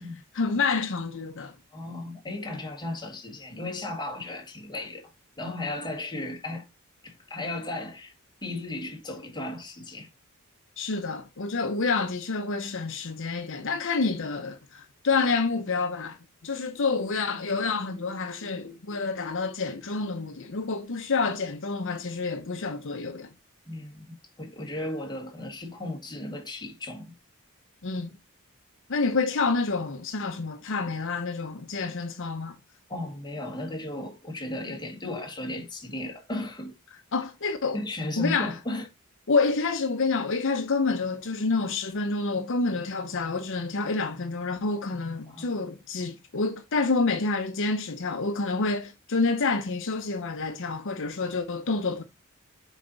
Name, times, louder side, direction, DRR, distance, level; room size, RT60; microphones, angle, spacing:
voice 1, 0.3-1.5 10.8-16.2 16.4-23.3 27.8-28.1 28.9-32.5 37.1-37.8 38.2-38.5 39.3-52.0, left 4 dB, 60° left, 0.8 m, -28 dB
voice 2, 1.7-5.1 5.4-6.6 7.0-8.1 8.4-10.1 23.6-27.1 32.9-36.7 37.7-38.9 45.3-45.5, left 2 dB, 20° left, 1.8 m, -35 dB
7.2 x 4.1 x 3.9 m
head